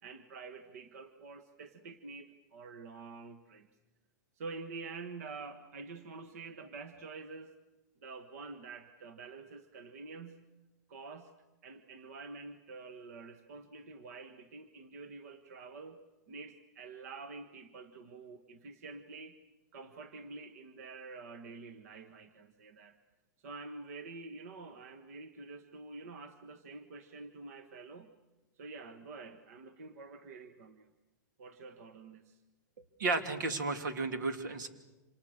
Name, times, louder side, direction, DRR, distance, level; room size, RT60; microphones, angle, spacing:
voice 1, 0.0-3.7 4.4-7.6 8.0-10.5 10.9-11.3 11.6-19.4 19.7-23.0 23.4-28.1 28.6-30.9 31.4-32.4, right 4 dB, 55° right, 10 dB, 1.5 m, -48 dB
voice 2, 33.0-34.7, right 3 dB, 90° right, 8 dB, 3.1 m, -33 dB
28.5 x 27.0 x 6.6 m, 1.1 s
supercardioid pair, 175°, 10 cm